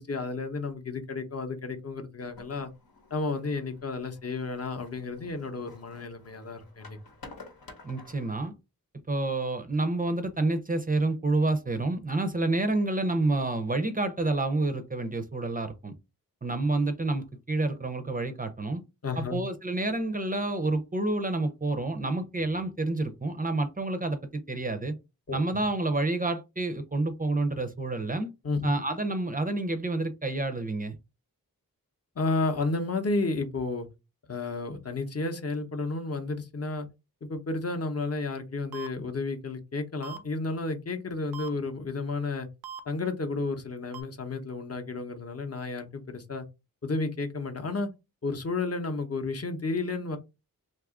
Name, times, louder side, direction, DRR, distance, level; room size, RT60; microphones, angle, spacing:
voice 1, 0.0-2.7 3.1-7.0 19.0-19.4 25.3-25.7 28.4-28.7 32.2-33.9 34.3-36.9 37.2-42.5 42.9-46.5 46.8-47.9 48.2-50.2, left 3 dB, 40° left, 0.7 m, -32 dB
sound 1, 2.2-8.5, left 3 dB, 75° left, 0.9 m, -52 dB
voice 2, 7.8-8.5 9.1-15.9 16.4-18.8 19.2-25.0 25.3-28.3 28.6-30.9, right 2 dB, 25° right, 0.5 m, -29 dB
sound 2, 38.7-38.9 40.0-40.2 41.3-41.5 42.6-42.8 43.9-44.0, right 8 dB, 80° right, 0.5 m, -39 dB
2.7 x 2.4 x 3.6 m
cardioid pair, 45°, 36 cm